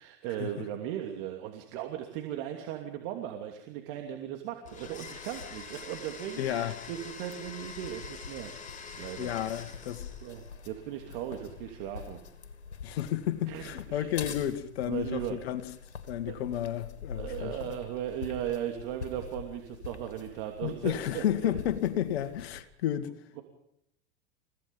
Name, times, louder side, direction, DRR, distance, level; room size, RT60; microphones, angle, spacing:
voice 1, 0.0-8.5 9.0-9.7 10.2-12.2 13.5-14.1 14.8-15.4 16.2-16.4 17.1-21.5 23.4-23.5, right 11 dB, 55° right, 2.8 m, -37 dB
sound 1, 4.6-22.6, left 6 dB, 90° left, 2.4 m, -46 dB
Domestic sounds home sounds, 4.7-10.5, left 5 dB, 25° left, 3.7 m, -45 dB
voice 2, 6.4-6.8 9.2-10.0 12.8-15.6 16.1-17.8 20.6-23.1, left 11 dB, 70° left, 2.1 m, -32 dB
29.5 x 16.5 x 5.5 m
hypercardioid pair, 95°, 33 cm